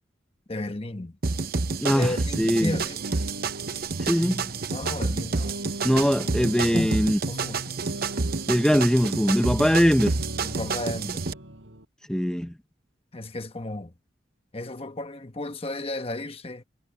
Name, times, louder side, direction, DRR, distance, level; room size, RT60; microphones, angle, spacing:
voice 1, 0.5-1.2 1.9-3.1 4.7-5.6 6.1-7.8 10.4-11.2 13.1-13.9 14.5-16.6, left 2 dB, 30° left, 1.2 m, -34 dB
sound 1, 1.2-11.3, right 4 dB, 50° right, 0.8 m, -29 dB
voice 2, 1.8-2.7 4.1-4.4 5.8-7.2 8.5-10.1 12.1-12.5, equal, 5° left, 0.9 m, -22 dB
sound 2, 2.4-11.8, right 1 dB, 75° right, 5.8 m, -38 dB
head